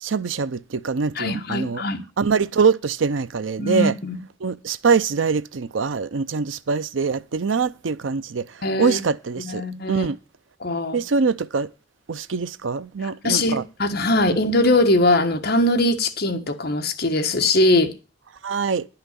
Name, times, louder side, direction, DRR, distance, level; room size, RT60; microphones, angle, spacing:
voice 1, 0.0-1.8 2.2-3.9 4.4-8.4 8.8-10.2 10.9-11.7 12.1-13.6 14.3-14.4 18.4-18.9, right 5 dB, 85° right, 0.6 m, -23 dB
voice 2, 1.1-2.0 3.6-4.2 8.6-9.0 9.4-10.1 10.6-11.0 13.0-17.9, left 1 dB, 55° left, 1.4 m, -21 dB
10.5 x 5.8 x 8.2 m
head